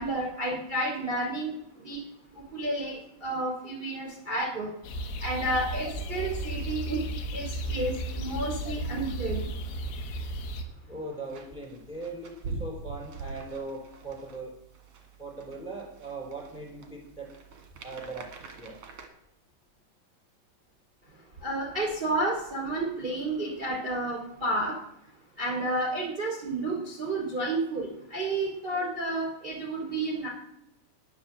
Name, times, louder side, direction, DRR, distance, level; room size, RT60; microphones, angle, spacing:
voice 1, 0.0-2.0 2.3-4.7 5.2-7.0 7.3-9.4 21.4-24.7 25.4-30.3, right 2 dB, 15° right, -3 dB, 2.3 m, -31 dB
sound 1, 4.8-10.6, right 1 dB, 90° left, 3.9 m, -34 dB
voice 2, 10.9-14.5 15.2-17.3 17.8-18.3 18.6-18.8, right 2 dB, 10° left, -1 dB, 3.4 m, -39 dB
sound 2, 11.2-19.1, right 4 dB, 50° right, 1.9 m, -44 dB
10.5 x 10.5 x 7.3 m, 0.81 s
omnidirectional pair, 5.4 m